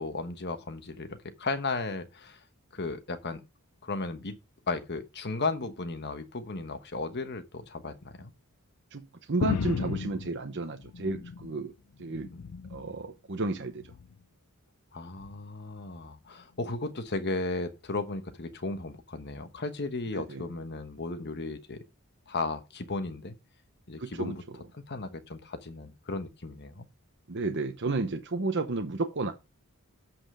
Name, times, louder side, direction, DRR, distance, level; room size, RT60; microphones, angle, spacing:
voice 1, 0.0-2.4 2.7-3.4 3.8-4.4 4.7-8.3 12.3-13.0 14.9-21.8 22.3-23.3 23.9-24.4 24.7-26.9, left 3 dB, 50° left, 1.2 m, -35 dB
voice 2, 9.3-11.7 12.0-12.3 12.7-13.8 20.2-20.4 24.0-24.3 27.3-29.3, right 3 dB, 55° right, 0.9 m, -32 dB
sound 1, 9.4-11.6 12.0-12.9 13.8-14.2 15.2-15.3, left 5 dB, 85° left, 0.5 m, -35 dB
7.7 x 5.9 x 4.9 m
head